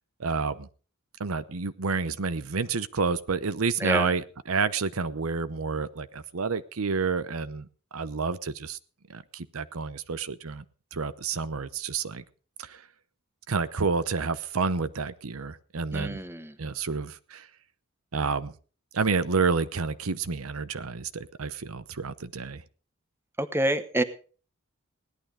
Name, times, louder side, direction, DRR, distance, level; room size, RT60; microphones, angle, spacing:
voice 1, 0.2-0.7 1.2-7.7 7.9-8.8 9.1-10.6 10.9-12.2 12.6-12.8 13.5-16.2 16.6-17.5 18.1-18.5 18.9-22.6, right 4 dB, 80° right, 13 dB, 0.9 m, -29 dB
voice 2, 3.8-4.1 15.9-16.5 23.4-24.0, right 1 dB, 10° right, 11 dB, 1.1 m, -27 dB
17.5 x 11.5 x 5.0 m, 0.39 s
head